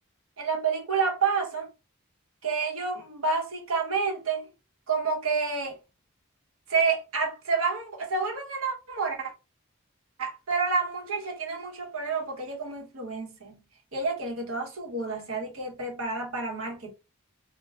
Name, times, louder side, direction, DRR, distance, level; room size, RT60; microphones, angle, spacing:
voice 1, 0.4-1.7 2.4-4.5 4.9-5.8 6.7-9.3 10.2-13.6 13.9-16.9, right 4 dB, 80° right, 1.0 m, -29 dB
3.2 x 2.1 x 3.5 m
head